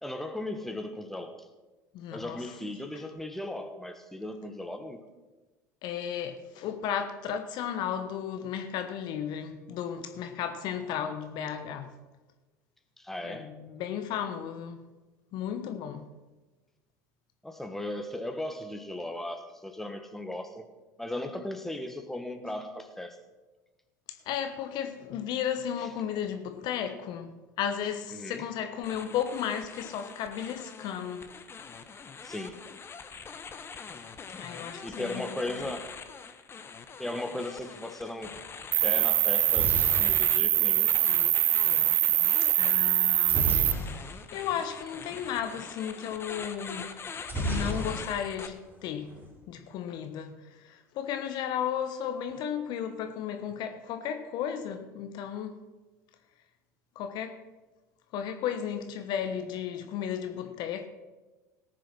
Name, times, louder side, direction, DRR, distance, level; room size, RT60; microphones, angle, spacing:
voice 1, 0.0-1.5 2.1-5.0 13.0-13.5 17.4-20.7 21.0-23.2 28.1-28.5 32.2-32.6 34.8-36.0 37.0-38.4 38.8-40.9 47.2-47.3, left 1 dB, 5° left, 1.4 m, -37 dB
voice 2, 1.9-2.5 5.8-11.9 13.2-14.8 15.3-16.1 24.3-31.3 34.4-35.6 42.6-43.6 43.9-47.0 47.4-49.2 49.5-55.6 56.9-57.4 58.1-60.9, left 9 dB, 50° left, 1.2 m, -34 dB
sound 1, 28.8-48.5, left 5 dB, 25° left, 1.2 m, -43 dB
Cricket, 38.7-43.7, right 15 dB, 50° right, 0.7 m, -24 dB
sound 2, 39.2-41.3 43.2-44.4 44.7-44.8 45.1-45.3 47.2-48.4 48.7-49.3, equal, 20° right, 4.0 m, -34 dB
18.0 x 6.8 x 6.0 m
figure-of-eight pair, 70°, 9 cm